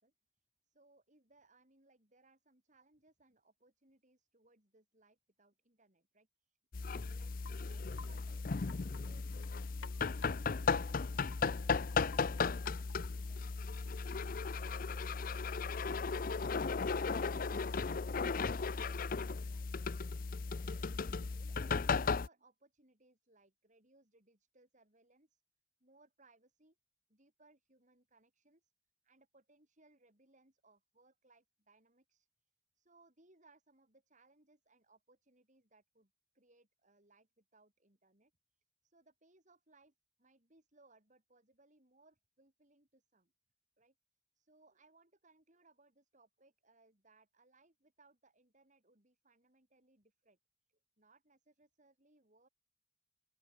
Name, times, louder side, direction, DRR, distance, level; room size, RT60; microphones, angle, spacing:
voice 1, 0.0-7.3 7.6-14.0 14.3-16.4 20.5-25.4 25.8-26.8 27.1-28.7 29.0-39.9 40.2-43.3 43.8-43.9 44.3-50.4 51.0-52.5, right 2 dB, 40° right, 5.0 m, -69 dB
sound 1, 6.7-22.3, left 4 dB, 45° left, 0.6 m, -36 dB
Wind chime, 7.2-13.4, left 5 dB, 85° left, 1.2 m, -57 dB
open air
head